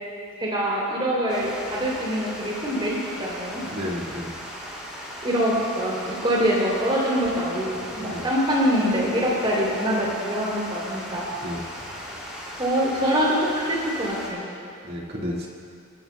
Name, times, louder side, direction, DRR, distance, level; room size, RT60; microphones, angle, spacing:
voice 1, 0.4-3.6 5.2-11.3 12.6-14.5, equal, 25° right, -4 dB, 3.1 m, -24 dB
Water, 1.3-14.3, equal, 5° right, 2.6 m, -38 dB
voice 2, 3.7-4.4 8.1-8.2 11.4-11.6 14.8-15.5, equal, 50° right, -3 dB, 1.9 m, -31 dB
25.5 x 13.0 x 2.3 m, 2.5 s
head